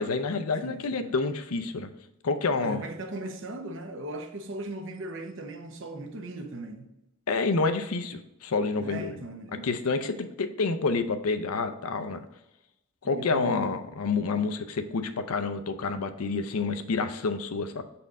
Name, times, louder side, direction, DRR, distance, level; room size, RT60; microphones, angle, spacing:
voice 1, 0.0-1.9 2.2-2.8 7.3-9.2 9.6-12.2 13.0-17.8, left 4 dB, 80° left, 0.6 m, -28 dB
voice 2, 0.6-1.2 2.5-6.9 8.8-9.7 13.0-13.8 16.3-16.4, right 1 dB, 55° right, 0.8 m, -38 dB
6.7 x 4.3 x 3.6 m
head